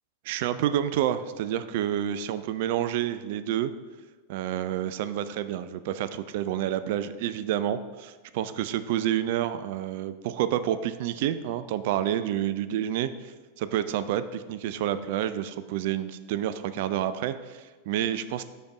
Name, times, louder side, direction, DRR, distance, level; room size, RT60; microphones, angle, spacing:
voice 1, 0.2-3.7 4.3-18.4, right 11 dB, 50° right, 12 dB, 0.3 m, -29 dB
5.4 x 5.1 x 4.6 m, 1.3 s
figure-of-eight pair, 90°, 0 cm